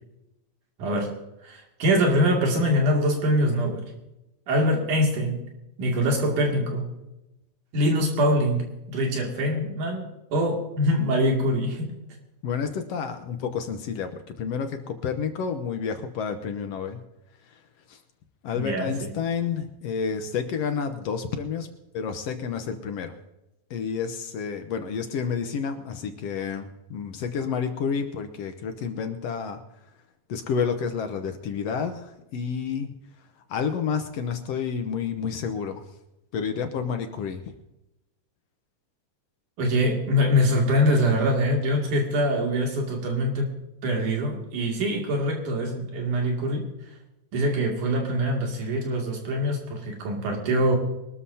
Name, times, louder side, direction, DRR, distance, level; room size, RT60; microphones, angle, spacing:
voice 1, 0.8-1.1 1.4-3.9 4.5-5.4 5.8-6.9 7.7-8.6 8.9-11.9 18.5-19.1 39.6-43.5 43.8-46.7 47.3-50.8, equal, 90° right, 0 dB, 4.0 m, -24 dB
voice 2, 12.4-17.0 17.9-18.0 18.4-23.1 23.7-29.6 30.3-32.9 33.5-35.8 36.3-37.4, left 6 dB, 65° left, 7 dB, 1.8 m, -30 dB
23.5 x 13.0 x 2.8 m, 0.93 s
omnidirectional pair, 3.5 m